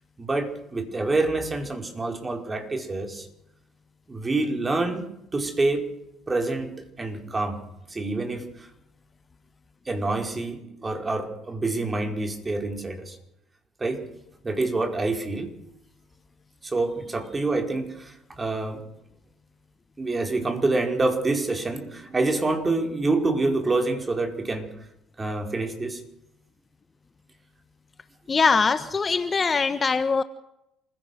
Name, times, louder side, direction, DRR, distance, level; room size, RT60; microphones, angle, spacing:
voice 1, 0.2-3.3 4.1-5.1 5.3-5.9 6.3-7.6 7.9-8.4 9.8-13.2 13.8-14.0 14.4-15.5 16.6-18.8 20.0-24.7 25.2-26.0, right 2 dB, 25° right, 4 dB, 5.0 m, -27 dB
voice 2, 28.3-30.2, left 4 dB, 30° left, 12 dB, 1.3 m, -22 dB
27.0 x 16.5 x 6.5 m, 0.82 s
hypercardioid pair, 65°, 0 cm